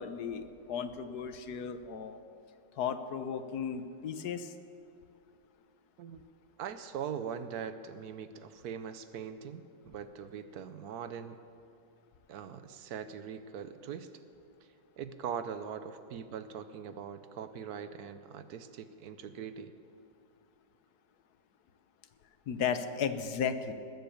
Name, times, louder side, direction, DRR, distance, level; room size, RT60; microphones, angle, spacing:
voice 1, 0.0-2.2 2.8-4.5 22.5-23.7, left 7 dB, 65° left, 10 dB, 1.3 m, -35 dB
voice 2, 6.6-11.4 12.3-14.1 15.0-19.7, right 7 dB, 65° right, 11 dB, 1.1 m, -41 dB
20.5 x 8.1 x 7.0 m, 2.4 s
omnidirectional pair, 1.9 m